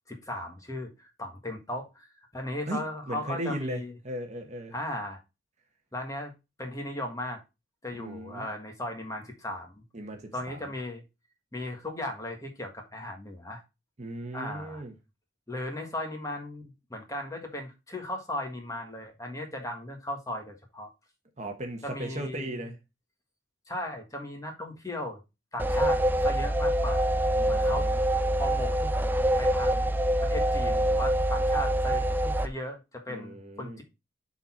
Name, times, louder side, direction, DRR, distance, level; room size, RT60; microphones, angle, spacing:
voice 1, 0.1-3.9 4.7-5.2 5.9-6.3 6.6-7.4 7.8-9.8 10.3-11.0 11.5-13.6 14.3-14.8 15.5-16.6 16.9-20.9 21.8-22.7 23.7-25.2 25.5-27.1 27.5-27.9 28.4-28.8 29.4-29.9 30.2-32.1 32.4-33.8, left 1 dB, 15° left, 1.6 m, -37 dB
voice 2, 2.7-4.7 8.0-8.5 9.9-10.6 14.0-14.9 21.4-22.8 27.4-28.0 33.1-33.8, right 1 dB, 35° right, 1.0 m, -37 dB
sound 1, 25.6-32.5, right 1 dB, 10° right, 0.4 m, -25 dB
6.8 x 4.1 x 4.3 m
head